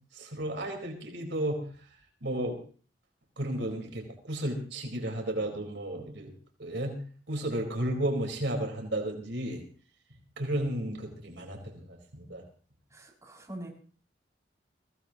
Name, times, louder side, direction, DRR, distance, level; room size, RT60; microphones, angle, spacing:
voice 1, 0.1-1.7 2.2-2.6 3.4-6.3 6.6-7.0 7.3-9.6 10.4-12.4, right 1 dB, 75° right, 2 dB, 4.6 m, -33 dB
voice 2, 12.9-13.7, right 1 dB, 15° right, -1 dB, 6.5 m, -43 dB
23.0 x 17.0 x 3.0 m, 0.41 s
head